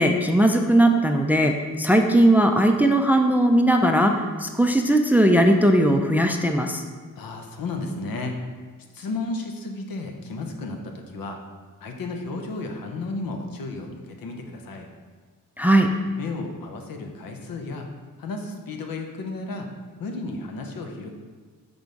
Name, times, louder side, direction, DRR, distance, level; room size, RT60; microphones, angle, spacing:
voice 1, 0.0-6.8 15.6-15.9, right 1 dB, 5° right, 4 dB, 0.3 m, -19 dB
voice 2, 7.2-8.4 8.9-11.4 11.8-14.9 16.2-17.9 18.2-19.7 20.0-21.1, left 3 dB, 90° left, 3 dB, 0.9 m, -33 dB
6.0 x 3.5 x 5.2 m, 1.5 s
wide cardioid pair, 130°, 34 cm